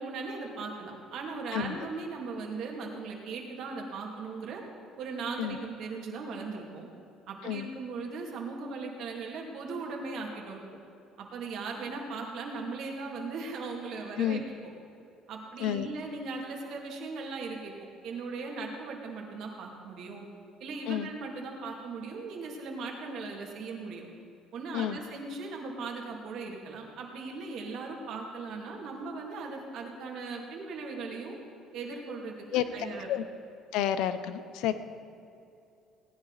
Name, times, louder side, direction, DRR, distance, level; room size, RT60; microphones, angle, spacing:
voice 1, 0.0-4.6 5.0-6.9 7.3-10.6 11.2-14.4 15.3-20.2 20.6-24.0 24.5-31.4 31.7-33.1, right 4 dB, 65° right, 0 dB, 2.4 m, -38 dB
voice 2, 33.7-34.7, left 11 dB, 80° left, 11 dB, 0.7 m, -30 dB
18.0 x 10.5 x 4.0 m, 2.6 s
cardioid pair, 115°, 0 cm